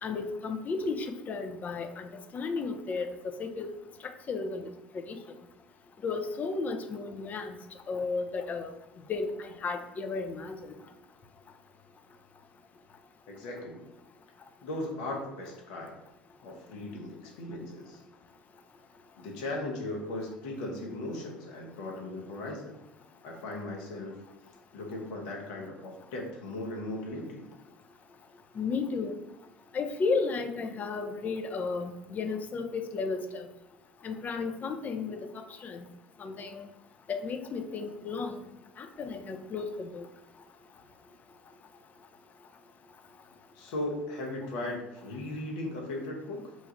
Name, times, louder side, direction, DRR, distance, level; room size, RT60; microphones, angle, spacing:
voice 1, 0.0-3.7 4.3-4.7 5.1-5.2 6.0-7.6 7.9-8.7 9.1-10.7 28.6-29.2 29.7-33.5 34.0-35.8 36.2-36.7 37.1-38.4 38.8-40.1, left 4 dB, 35° left, 7 dB, 0.5 m, -33 dB
voice 2, 13.3-13.8 14.6-16.0 16.4-18.0 19.2-22.8 23.2-24.2 24.7-27.5 43.5-46.6, left 1 dB, 70° left, 0 dB, 0.9 m, -37 dB
3.2 x 2.3 x 4.0 m, 0.98 s
hypercardioid pair, 65°, 5 cm